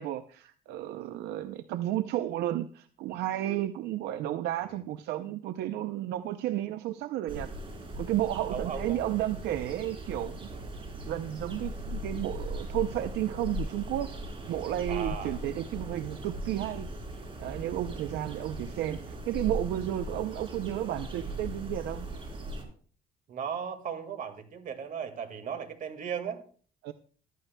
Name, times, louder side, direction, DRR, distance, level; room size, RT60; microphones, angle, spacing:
voice 1, 0.0-7.5 8.0-10.5 11.1-14.1 14.5-16.9 17.4-22.1 26.8-26.9, right 13 dB, 80° right, 0.5 m, -32 dB
sound 1, 7.3-22.6, equal, 35° right, 3.3 m, -39 dB
voice 2, 8.5-9.1 10.5-10.7 14.9-15.4 17.8-18.0 23.3-26.4, right 7 dB, 55° right, 1.9 m, -37 dB
15.0 x 12.5 x 2.2 m
cardioid pair, 110°, 17 cm